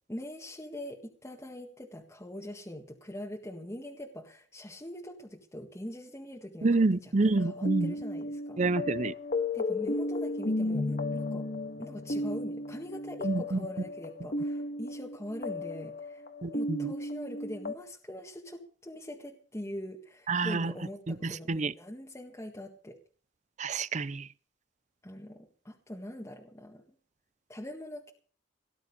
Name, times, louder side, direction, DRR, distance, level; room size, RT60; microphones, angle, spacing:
voice 1, 0.1-8.6 9.5-11.4 11.8-23.0 25.0-25.4 25.6-26.8 27.5-28.1, left 1 dB, 15° left, 1.7 m, -43 dB
voice 2, 6.6-7.9 8.6-9.1 13.2-13.6 16.4-16.9 20.3-20.7 21.1-21.7 23.6-24.3, right 3 dB, 40° right, 0.6 m, -28 dB
sound 1, 7.3-17.7, left 2 dB, 50° left, 1.7 m, -34 dB
18.0 x 10.5 x 5.3 m
head